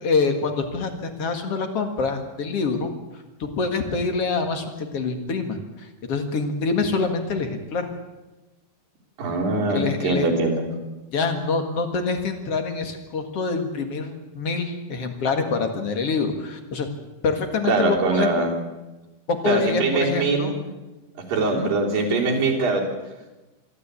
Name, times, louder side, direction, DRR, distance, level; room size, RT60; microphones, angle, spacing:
voice 1, 0.0-2.9 3.4-7.9 9.7-10.3 11.1-16.9 17.2-18.3 19.3-20.5 21.5-21.7, left 4 dB, 50° left, 6 dB, 2.5 m, -26 dB
voice 2, 9.2-10.6 17.7-18.5 19.5-20.6 21.3-22.8, right 3 dB, 85° right, -2 dB, 5.3 m, -22 dB
25.5 x 12.5 x 8.3 m, 1.1 s
omnidirectional pair, 3.9 m